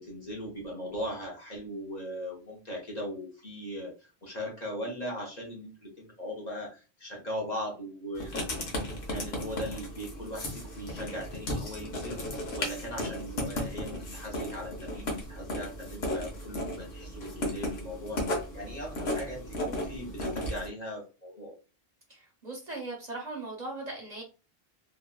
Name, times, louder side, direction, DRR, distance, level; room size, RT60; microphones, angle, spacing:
voice 1, 0.0-3.9 4.2-8.5 9.1-21.5, equal, 45° left, -3 dB, 1.0 m, -39 dB
Writing, 8.2-20.7, left 1 dB, 85° left, 1.1 m, -35 dB
voice 2, 22.1-24.2, right 2 dB, 45° right, -1 dB, 0.9 m, -39 dB
3.1 x 2.3 x 2.2 m, 0.32 s
omnidirectional pair, 1.1 m